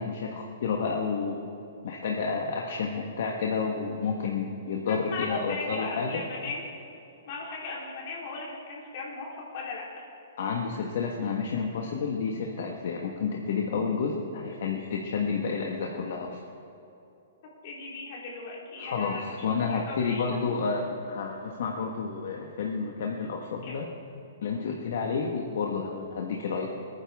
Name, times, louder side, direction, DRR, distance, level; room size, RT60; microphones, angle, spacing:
voice 1, 0.0-1.5 1.8-6.2 10.4-16.4 18.8-23.9 24.4-26.9, left 5 dB, 60° left, 0 dB, 1.4 m, -30 dB
voice 2, 4.9-6.7 7.3-9.3 9.5-10.0 17.6-20.5 23.6-23.7, left 3 dB, 40° left, -4 dB, 3.4 m, -37 dB
25.5 x 9.9 x 3.6 m, 2.8 s
hypercardioid pair, 165°, 0 cm